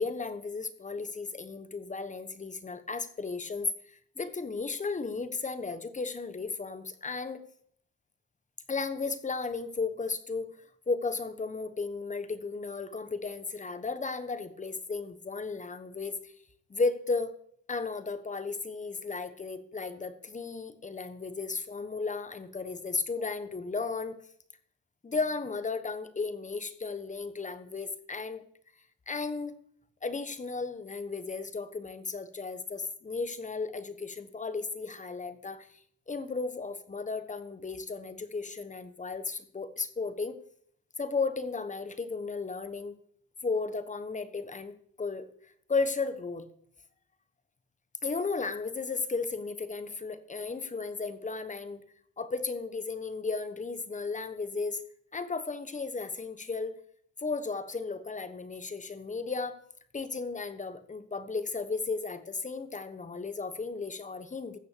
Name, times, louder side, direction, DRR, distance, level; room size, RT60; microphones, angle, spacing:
voice 1, 0.0-7.4 8.7-10.6 10.9-16.3 16.7-17.3 17.7-24.2 25.0-28.4 29.1-29.6 30.0-35.7 36.1-40.4 41.0-43.0 43.4-44.7 45.0-45.3 45.7-46.5 48.0-51.8 52.2-54.8 55.1-56.7 57.2-59.6 59.9-64.6, left 4 dB, 25° left, 11 dB, 1.2 m, -34 dB
15.0 x 5.8 x 6.8 m, 0.65 s
cardioid pair, 90°, 30 cm